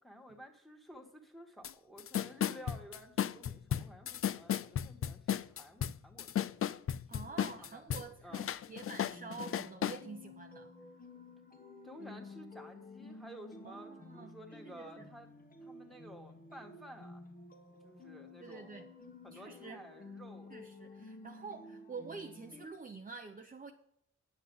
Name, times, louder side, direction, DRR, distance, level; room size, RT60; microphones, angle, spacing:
voice 1, 0.0-6.5 7.1-8.5 11.8-15.3 15.6-17.2 17.8-18.8 19.2-20.5, equal, ahead, 2 dB, 1.8 m, -53 dB
sound 1, 1.6-1.7 2.0-8.1 8.3-10.0, left 10 dB, 50° left, 0.4 m, -34 dB
voice 2, 7.1-10.7 13.6-14.4 14.6-15.0 18.4-18.9 19.3-19.8 20.5-23.7, right 4 dB, 30° right, 3 dB, 0.8 m, -48 dB
sound 2, 9.1-22.7, left 2 dB, 30° left, 1.4 m, -52 dB
9.9 x 7.8 x 5.5 m, 0.71 s
wide cardioid pair, 135°, 29 cm